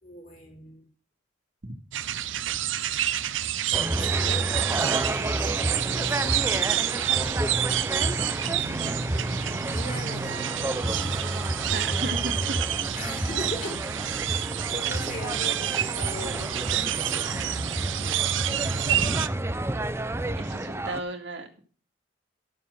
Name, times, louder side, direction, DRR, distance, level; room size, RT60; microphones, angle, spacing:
voice 1, 0.0-0.9 3.9-7.3 9.4-10.5 10.9-11.2 12.9-13.8 14.2-17.3, left 1 dB, 45° left, 2 dB, 3.1 m, -40 dB
sound 1, 1.9-19.3, right 12 dB, 75° right, 0.6 m, -29 dB
sound 2, 3.7-21.0, right 1 dB, 15° right, 0.6 m, -30 dB
voice 2, 11.7-12.4 20.4-21.6, right 2 dB, 60° right, 2 dB, 1.9 m, -35 dB
12.0 x 7.2 x 6.5 m, 0.40 s
head